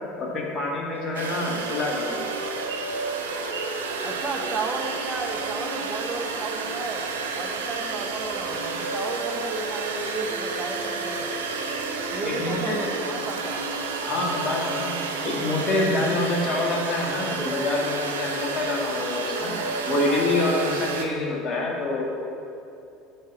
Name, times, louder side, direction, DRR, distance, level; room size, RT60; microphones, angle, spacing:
voice 1, 0.2-2.2 12.2-12.8 14.0-15.0 15.2-19.6 19.8-22.1, left 2 dB, 25° left, -3 dB, 1.7 m, -26 dB
sound 1, 0.9-8.0 8.5-16.3 18.0-20.6, equal, 90° left, 0.9 m, -38 dB
sound 2, 1.1-21.0, right 4 dB, 75° right, 0.5 m, -31 dB
voice 2, 4.0-7.1 7.3-11.2 12.1-13.6, right 3 dB, 30° right, 2 dB, 0.8 m, -33 dB
7.3 x 4.4 x 5.8 m, 2.7 s
figure-of-eight pair, 65°, 0 cm